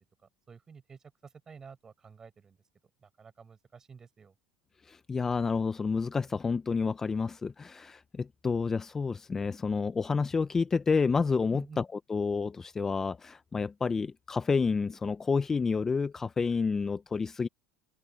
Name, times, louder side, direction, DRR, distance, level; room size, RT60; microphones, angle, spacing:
voice 1, 0.5-2.6 3.0-4.3 11.5-11.8, right 5 dB, 25° right, 7.8 m, -51 dB
voice 2, 4.8-17.5, left 5 dB, 20° left, 0.7 m, -29 dB
supercardioid pair, 105°, 2 cm